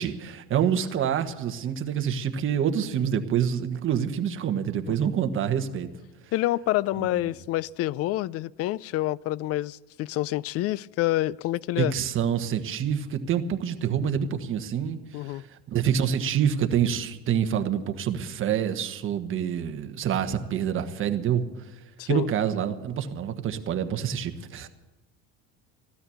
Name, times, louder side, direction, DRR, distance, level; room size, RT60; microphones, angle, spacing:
voice 1, 0.0-5.9 7.0-7.1 11.8-21.4 22.0-24.7, right 8 dB, 40° right, 1.3 m, -27 dB
voice 2, 6.3-11.9 15.1-15.4 22.0-22.3, left 16 dB, 50° left, 0.4 m, -27 dB
15.5 x 12.5 x 7.1 m
cardioid pair, 125°, 32 cm